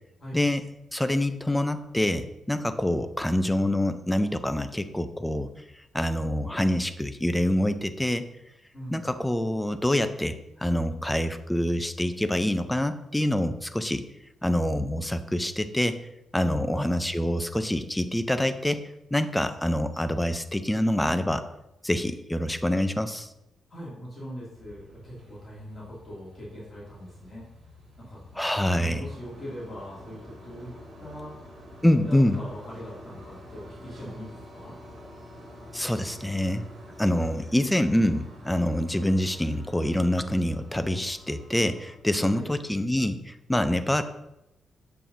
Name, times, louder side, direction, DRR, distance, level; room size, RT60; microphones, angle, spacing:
voice 1, 0.9-5.5 5.9-8.3 8.9-14.0 14.4-16.0 16.3-18.8 19.1-21.4 21.8-23.3 28.4-29.0 31.8-32.4 35.7-36.6 37.0-44.0, left 1 dB, 5° left, 9 dB, 0.4 m, -26 dB
voice 2, 8.7-9.1 16.5-16.7 23.7-27.4 28.0-28.2 28.7-30.7 31.0-31.4 31.8-34.7 42.3-42.5, equal, 30° left, -8 dB, 2.5 m, -41 dB
sound 1, 24.5-42.0, equal, 50° right, 2.7 m, -48 dB
7.3 x 6.6 x 2.7 m, 0.88 s
cardioid pair, 130°, 0 cm